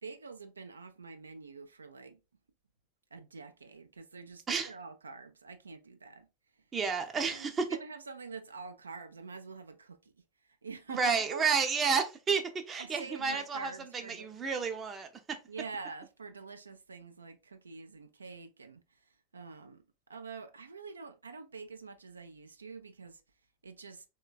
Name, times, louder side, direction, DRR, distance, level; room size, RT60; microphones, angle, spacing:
voice 1, 0.0-2.2 3.1-6.3 7.2-11.5 12.8-14.4 15.5-23.2 23.6-24.0, right 4 dB, 80° right, 0.3 m, -46 dB
voice 2, 6.7-7.7 10.9-13.7 14.1-15.4, right 5 dB, 25° right, 0.5 m, -31 dB
3.2 x 2.2 x 2.2 m
figure-of-eight pair, 90°, 0 cm